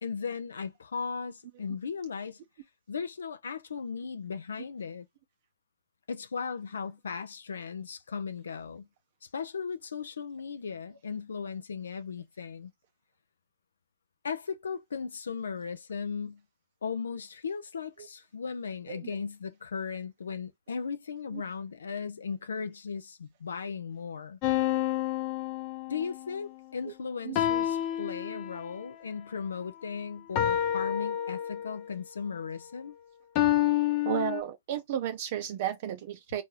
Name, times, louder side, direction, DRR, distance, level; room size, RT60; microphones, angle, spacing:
voice 1, 0.0-2.4 2.9-5.1 6.1-8.9 9.2-12.7 14.2-16.4 16.8-24.4 25.9-33.0, left 6 dB, 80° left, 0.4 m, -37 dB
sound 1, 24.4-26.2 27.3-28.8 30.3-31.9 33.3-34.4, left 12 dB, 45° left, 0.7 m, -28 dB
voice 2, 34.1-36.4, right 10 dB, 55° right, 0.5 m, -33 dB
4.4 x 2.6 x 3.1 m
hypercardioid pair, 110°, 0 cm